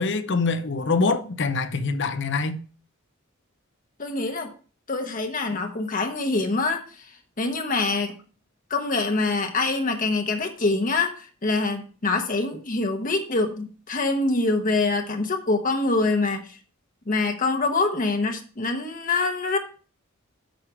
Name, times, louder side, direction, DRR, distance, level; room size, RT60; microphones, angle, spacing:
voice 1, 0.0-2.6, left 4 dB, 60° left, 0.8 m, -24 dB
voice 2, 4.0-4.5 4.9-6.8 7.4-8.1 8.7-16.6 17.1-19.6, left 3 dB, 40° left, 1.0 m, -25 dB
7.9 x 5.0 x 4.9 m
head